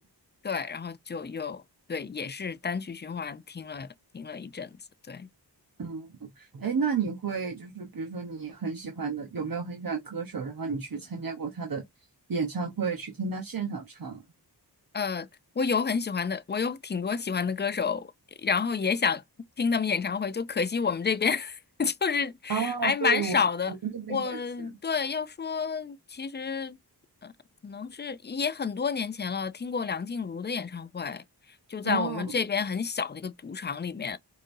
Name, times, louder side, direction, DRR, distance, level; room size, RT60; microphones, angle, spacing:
voice 1, 0.4-1.6 1.9-4.8 5.1-5.3 14.9-15.3 15.6-18.1 18.4-19.2 19.6-23.7 24.1-26.8 27.2-27.3 27.6-31.2 31.7-34.2, left 5 dB, 25° left, 0.4 m, -30 dB
voice 2, 5.8-11.8 12.3-14.2 22.5-23.4 23.7-24.4 31.8-32.3, right 5 dB, 55° right, 0.9 m, -32 dB
5.2 x 2.6 x 2.6 m
wide cardioid pair, 80°, 41 cm